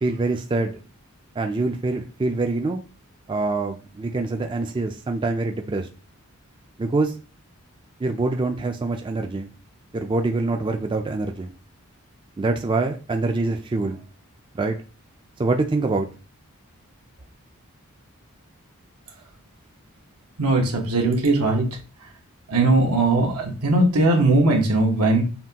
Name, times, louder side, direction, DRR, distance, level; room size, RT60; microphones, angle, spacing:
voice 1, 0.0-0.8 1.4-2.8 3.3-5.9 6.8-7.1 8.0-9.5 9.9-11.5 12.4-14.0 14.5-14.8 15.4-16.1, right 3 dB, 20° right, 4 dB, 0.3 m, -25 dB
voice 2, 20.4-21.7 22.5-25.2, right 2 dB, 85° right, 1 dB, 1.2 m, -19 dB
5.7 x 2.3 x 2.8 m, 0.34 s
head